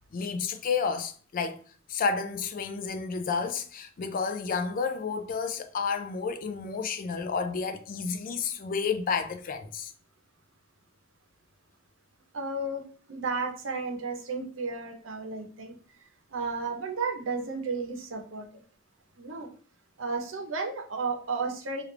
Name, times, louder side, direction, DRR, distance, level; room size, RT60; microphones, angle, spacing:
voice 1, 0.1-1.6 1.9-9.9, left 5 dB, 45° left, 0.4 m, -31 dB
voice 2, 12.3-12.8 13.1-15.7 16.3-18.6 19.2-19.5 20.0-21.8, right 3 dB, 75° right, 0.7 m, -33 dB
3.0 x 2.4 x 3.3 m
head